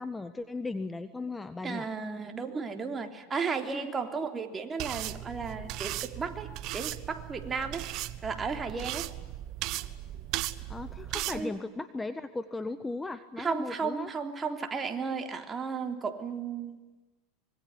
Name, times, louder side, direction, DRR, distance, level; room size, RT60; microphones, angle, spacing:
voice 1, 0.0-1.9 10.7-14.1, left 3 dB, 10° left, 11 dB, 1.5 m, -36 dB
voice 2, 1.6-7.9 8.2-9.1 11.3-11.5 13.4-16.8, right 5 dB, 20° right, 6 dB, 3.5 m, -34 dB
sound 1, 4.8-11.4, right 15 dB, 55° right, 1.3 m, -37 dB
25.5 x 22.5 x 9.7 m, 1.2 s
supercardioid pair, 110°, 0 cm